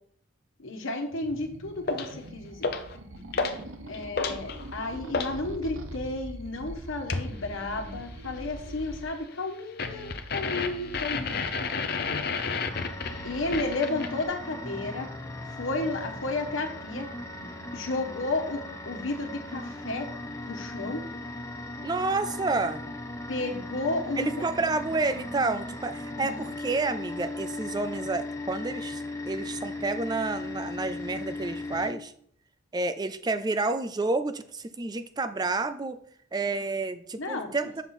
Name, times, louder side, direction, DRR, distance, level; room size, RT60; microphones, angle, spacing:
voice 1, 0.6-2.7 3.8-11.5 13.2-15.1 15.6-17.1 17.4-20.1 20.5-21.0 23.3-24.3 26.1-26.4 37.2-37.5, left 2 dB, 80° left, 4 dB, 1.3 m, -32 dB
sound 1, 1.1-9.0, right 1 dB, 85° right, 0.9 m, -42 dB
sound 2, 1.9-2.1 2.6-3.0 3.3-3.6 3.9-5.4 7.1-7.3 9.8-14.2, left 4 dB, 50° left, 0.7 m, -31 dB
sound 3, 12.7-31.9, left 2 dB, 15° left, 0.6 m, -38 dB
voice 2, 21.8-22.8 24.2-32.1 32.7-36.0 36.3-37.8, right 3 dB, 20° right, 11 dB, 0.3 m, -30 dB
7.1 x 5.6 x 4.3 m, 0.64 s
head